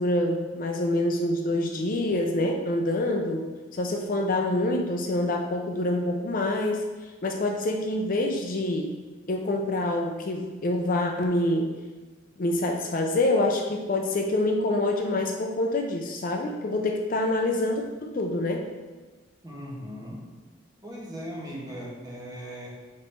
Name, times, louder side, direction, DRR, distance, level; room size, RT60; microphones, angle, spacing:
voice 1, 0.0-3.5 3.7-6.9 7.2-8.9 9.3-11.7 12.4-18.6, left 1 dB, 45° left, 3 dB, 0.5 m, -26 dB
voice 2, 19.4-20.2 20.8-22.7, equal, 20° right, -5 dB, 1.3 m, -38 dB
5.3 x 4.0 x 4.4 m, 1.3 s
head